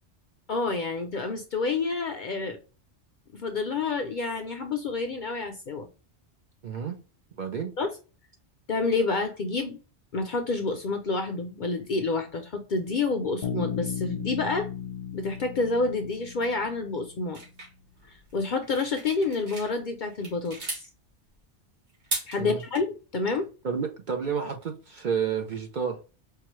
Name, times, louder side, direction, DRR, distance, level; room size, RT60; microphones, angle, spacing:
voice 1, 0.5-2.6 3.3-5.9 7.8-7.9 8.7-9.8 10.1-14.7 15.1-17.4 18.3-20.9 22.3-23.5, left 3 dB, 55° left, 0.6 m, -28 dB
voice 2, 6.6-6.9 7.4-7.7 22.4-22.6 23.6-26.0, right 7 dB, 50° right, 0.7 m, -30 dB
Bass guitar, 13.4-17.1, left 9 dB, 80° left, 1.0 m, -35 dB
sound 1, 17.3-19.7 20.1-20.9 21.9-22.8, right 1 dB, 80° right, 2.2 m, -36 dB
4.7 x 2.3 x 3.0 m
omnidirectional pair, 1.2 m